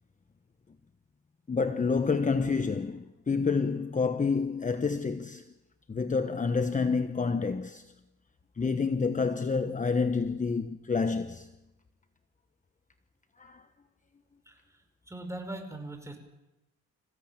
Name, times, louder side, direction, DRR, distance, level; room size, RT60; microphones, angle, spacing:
voice 1, 1.5-5.4 5.9-7.9 8.6-11.5 13.4-13.7, left 4 dB, 25° left, 1.2 m, -28 dB
voice 2, 14.5-16.2, right 1 dB, 10° right, 5.5 m, -41 dB
27.0 x 16.0 x 9.0 m
cardioid pair, 90°, 30 cm